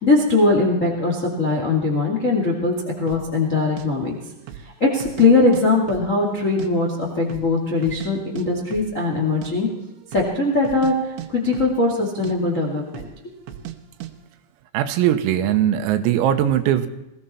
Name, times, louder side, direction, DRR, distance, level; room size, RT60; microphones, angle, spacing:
voice 1, 0.0-4.2 4.8-9.7 10.1-13.1, left 3 dB, 75° left, 0 dB, 0.7 m, -20 dB
sound 1, 3.1-3.3 3.8-3.9 4.4-4.7 5.0-5.6 5.9-6.7 7.0-7.1 7.3-8.1 8.4-8.5 8.7-8.9 9.2-9.5 10.0-10.3 10.6-12.0 12.2-12.4 12.9-13.2 13.5-13.8 14.0-14.1, right 12 dB, 75° right, 3.1 m, -36 dB
voice 2, 14.7-16.9, right 11 dB, 90° right, 9 dB, 3.8 m, -20 dB
21.0 x 16.0 x 4.3 m, 0.93 s
omnidirectional pair, 5.9 m